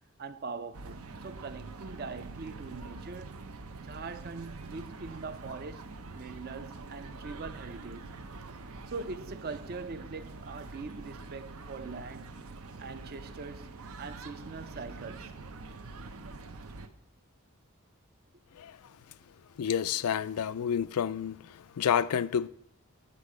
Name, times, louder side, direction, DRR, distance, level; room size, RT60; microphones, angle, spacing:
voice 1, 0.2-3.4 3.8-8.2 8.9-12.4 12.8-15.3, right 4 dB, 45° right, 0.5 m, -42 dB
sound 1, 0.7-16.9, right 3 dB, 80° right, 0.7 m, -45 dB
voice 2, 19.6-22.5, left 8 dB, 85° left, 0.4 m, -29 dB
9.9 x 6.4 x 4.9 m
head